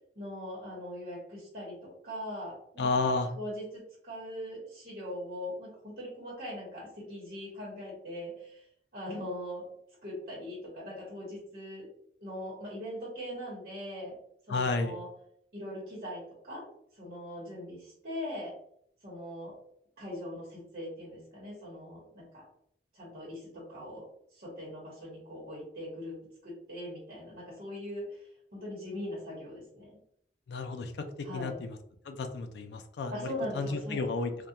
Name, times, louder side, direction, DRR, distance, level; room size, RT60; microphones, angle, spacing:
voice 1, 0.1-8.6 8.9-9.7 10.0-11.9 12.2-14.2 14.5-15.1 15.5-16.6 16.9-18.5 19.0-19.5 20.0-22.5 22.9-28.3 28.5-30.0 31.2-31.6 33.1-34.2, left 1 dB, 55° right, -5 dB, 1.0 m, -41 dB
voice 2, 2.8-3.3 14.5-14.9 30.5-30.9 31.3-31.7 32.1-33.1 33.5-34.5, left 3 dB, 75° left, 7 dB, 0.3 m, -31 dB
2.3 x 2.2 x 2.7 m, 0.68 s
head